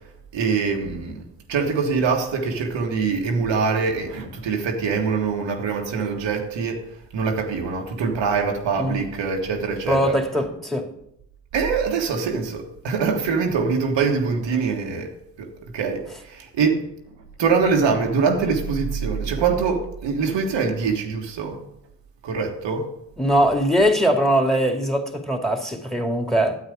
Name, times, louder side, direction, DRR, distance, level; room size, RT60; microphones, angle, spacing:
voice 1, 0.3-1.2 1.5-6.8 7.1-10.1 11.5-15.1 15.4-15.5 15.7-16.8 17.4-21.6 22.2-22.9, right 5 dB, 75° right, 1.5 m, -23 dB
voice 2, 9.9-10.9 23.2-26.6, equal, ahead, 2.3 m, -21 dB
9.6 x 8.0 x 5.0 m
supercardioid pair, 40°, 45 cm